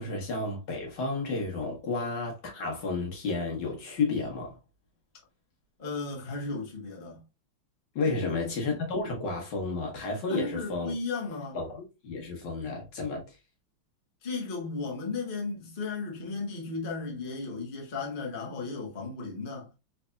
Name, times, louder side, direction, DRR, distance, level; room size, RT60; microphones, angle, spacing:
voice 1, 0.0-4.6 8.0-11.0 11.5-13.4, left 3 dB, 65° left, 1.7 m, -32 dB
voice 2, 5.8-7.2 8.0-8.4 10.3-11.6 14.2-19.7, left 3 dB, 35° left, 1.0 m, -35 dB
4.1 x 3.3 x 2.3 m
omnidirectional pair, 2.2 m